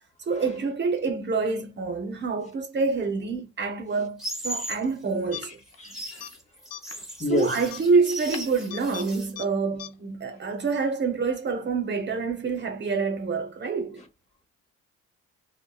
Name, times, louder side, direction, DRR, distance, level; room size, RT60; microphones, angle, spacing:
voice 1, 0.3-5.6 7.2-14.0, right 4 dB, 35° right, 0.8 m, -27 dB
sound 1, 4.2-4.8 5.7-9.3, right 1 dB, ahead, 1.0 m, -37 dB
sound 2, 5.3-5.8 6.1-6.3 6.7-7.0 7.6-9.1 9.4-9.5 9.8-9.9, left 10 dB, 55° left, 0.5 m, -39 dB
voice 2, 5.5-6.3 7.2-7.6, left 2 dB, 25° left, 0.9 m, -31 dB
2.7 x 2.2 x 2.2 m
cardioid pair, 90°, 30 cm